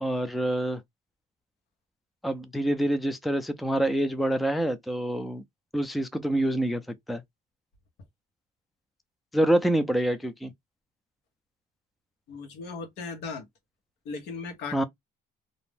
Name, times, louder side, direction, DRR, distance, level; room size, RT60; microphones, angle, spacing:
voice 1, 0.0-0.8 2.2-5.4 5.7-6.8 7.1-7.2 9.3-10.5 14.7-14.8, right 1 dB, ahead, 0.4 m, -26 dB
voice 2, 12.3-13.5 14.0-14.8, left 4 dB, 80° left, 0.9 m, -37 dB
2.5 x 2.0 x 3.3 m
cardioid pair, 110°, 17 cm